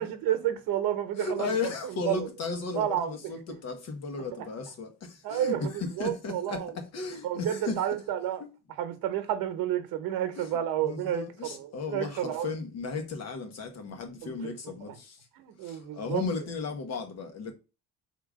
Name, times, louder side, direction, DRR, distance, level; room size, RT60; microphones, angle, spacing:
voice 1, 0.0-1.6 1.8-2.3 2.7-3.4 5.2-6.7 7.2-8.4 8.8-12.5 14.2-14.5 15.4-16.2, right 11 dB, 85° right, 1.0 m, -31 dB
voice 2, 1.2-7.8 8.4-8.5 10.4-15.3 15.6-17.5, left 4 dB, 50° left, 1.1 m, -35 dB
3.7 x 2.9 x 4.7 m
cardioid pair, 160°, 34 cm